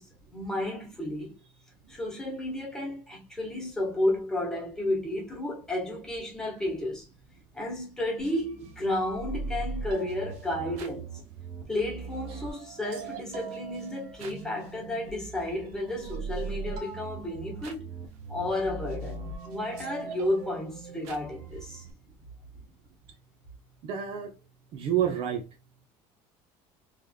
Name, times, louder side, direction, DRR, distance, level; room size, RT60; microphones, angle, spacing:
voice 1, 0.0-1.3 1.9-7.1 7.5-11.1 11.7-17.9 18.3-21.8, left 1 dB, 5° left, 1.4 m, -32 dB
sound 1, 8.2-21.9, right 4 dB, 85° right, 1.0 m, -40 dB
voice 2, 23.8-24.3 24.7-25.4, right 9 dB, 55° right, 0.8 m, -28 dB
3.5 x 3.3 x 2.3 m
cardioid pair, 155°, 11 cm